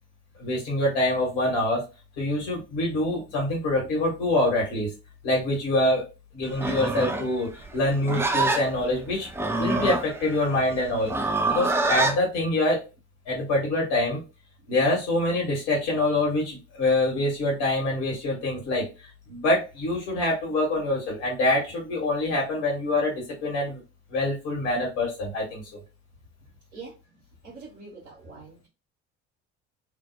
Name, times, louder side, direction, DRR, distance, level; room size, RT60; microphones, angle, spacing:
voice 1, 0.4-1.9 2.2-4.9 5.2-6.0 6.3-9.3 9.6-12.8 13.2-14.2 14.7-18.9 19.3-23.8 24.1-25.6, left 2 dB, 70° left, -2 dB, 1.2 m, -25 dB
Livestock farm animals working animals, 6.5-12.2, right 2 dB, 10° right, 0.3 m, -26 dB
voice 2, 27.4-28.7, right 4 dB, 80° right, -4 dB, 0.9 m, -43 dB
2.6 x 2.0 x 2.6 m, 0.29 s
figure-of-eight pair, 55°, 35 cm